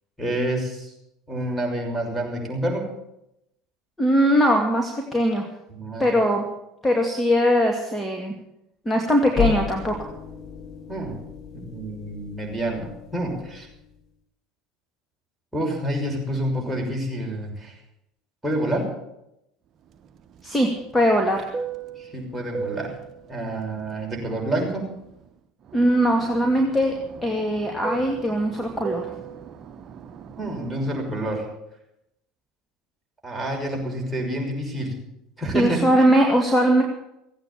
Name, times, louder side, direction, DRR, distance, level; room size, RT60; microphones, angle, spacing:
voice 1, 0.2-0.9 1.3-2.8 5.7-6.1 10.9-11.2 11.5-13.7 15.5-17.8 18.4-18.9 22.0-23.0 23.3-24.8 30.4-31.5 33.2-34.9 35.4-36.0, right 1 dB, 5° right, -2 dB, 6.1 m, -28 dB
voice 2, 4.0-5.5 6.0-6.4 6.8-8.3 8.9-10.1 20.4-21.5 25.7-27.0 27.2-29.1 35.5-36.8, equal, 10° left, 2 dB, 2.4 m, -20 dB
sound 1, 9.3-14.0, left 9 dB, 40° left, 1.7 m, -33 dB
Fixed-wing aircraft airplane, 19.9-25.3 25.6-31.5, right 6 dB, 45° right, 1.0 m, -37 dB
16.0 x 9.0 x 8.6 m, 0.85 s
hypercardioid pair, 80°, 0 cm